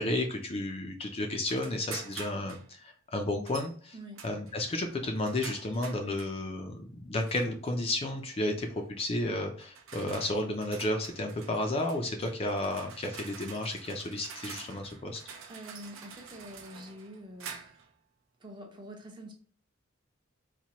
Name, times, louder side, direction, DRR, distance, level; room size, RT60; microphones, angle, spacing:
voice 1, 0.0-3.9 4.2-15.2, left 1 dB, 30° left, 0.4 m, -32 dB
sound 1, 1.5-2.7 3.5-3.7 4.2-6.4 7.2-7.7 8.8-9.0 9.6-17.9, right 6 dB, 75° right, 0.6 m, -47 dB
voice 2, 15.5-17.8 18.4-19.3, equal, 20° right, 0.6 m, -46 dB
4.2 x 2.2 x 2.9 m
head